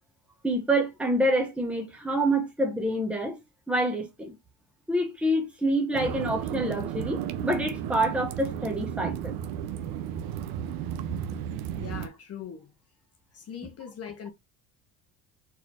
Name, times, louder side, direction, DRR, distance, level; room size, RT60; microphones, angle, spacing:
voice 1, 0.4-3.4 3.7-4.3 4.9-9.4, right 1 dB, 5° right, 1.2 m, -27 dB
sound 1, 5.9-12.1, right 10 dB, 65° right, 0.8 m, -33 dB
voice 2, 11.8-12.7 13.3-14.3, left 8 dB, 35° left, 0.9 m, -40 dB
4.4 x 4.0 x 3.0 m
hypercardioid pair, 70°, 42 cm